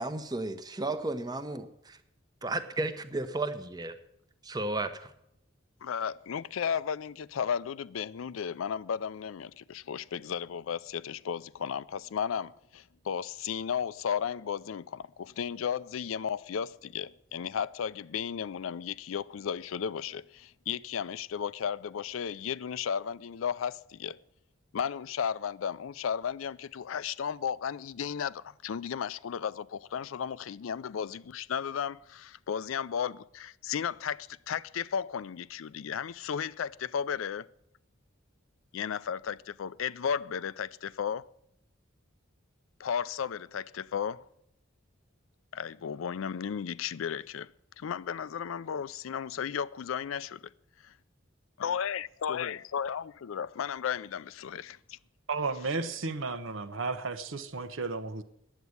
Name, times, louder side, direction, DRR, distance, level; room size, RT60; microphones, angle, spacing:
voice 1, 0.0-2.0 2.4-4.0 4.4-5.1, right 2 dB, 20° right, 0.9 m, -33 dB
voice 2, 5.8-24.2 24.7-37.5 38.7-41.3 42.8-44.2 45.5-47.5 47.8-50.3 51.6-55.0, left 7 dB, 85° left, 0.4 m, -34 dB
voice 3, 55.3-58.2, right 3 dB, 80° right, 1.0 m, -33 dB
10.0 x 8.2 x 9.5 m
head